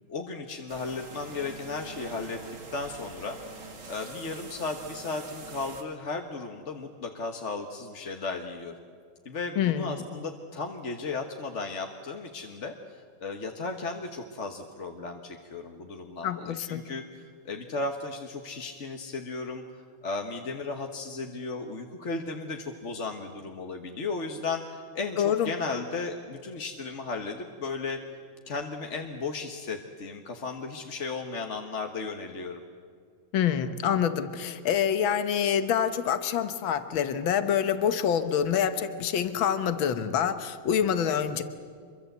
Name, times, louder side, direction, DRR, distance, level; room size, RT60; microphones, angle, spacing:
voice 1, 0.1-2.4 2.7-8.7 9.2-28.0 28.5-32.6, left 3 dB, 40° left, 4 dB, 1.5 m, -35 dB
sound 1, 0.7-5.8, right 3 dB, 60° right, 3.3 m, -44 dB
voice 2, 9.6-10.0 16.2-16.8 25.2-25.5 33.3-41.4, left 8 dB, 80° left, 11 dB, 1.9 m, -26 dB
26.0 x 23.5 x 8.0 m, 2.1 s
omnidirectional pair, 2.2 m